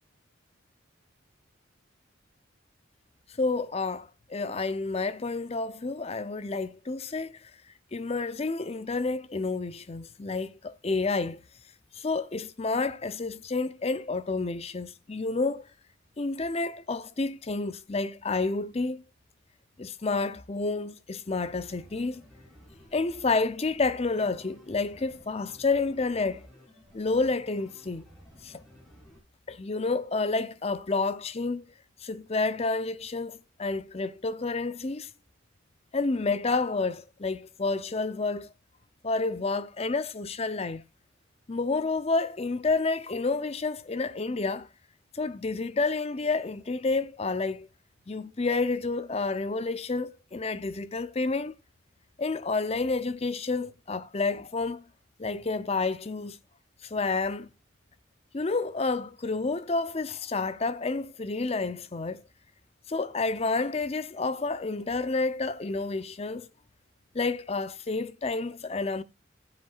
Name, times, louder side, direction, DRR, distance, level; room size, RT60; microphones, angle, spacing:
voice 1, 3.4-7.5 7.9-11.4 11.9-15.7 16.2-19.0 19.8-22.2 22.9-26.4 26.9-28.1 28.4-28.6 29.5-31.6 32.0-35.1 35.9-38.5 39.0-40.8 41.5-44.7 45.1-47.7 48.1-51.6 52.2-54.8 55.2-56.4 56.8-57.5 58.3-62.2 62.9-66.5 67.1-69.0, left 3 dB, 30° left, 0.6 m, -29 dB
sound 1, 21.4-29.2, equal, ahead, 4.9 m, -54 dB
16.0 x 7.6 x 2.4 m
head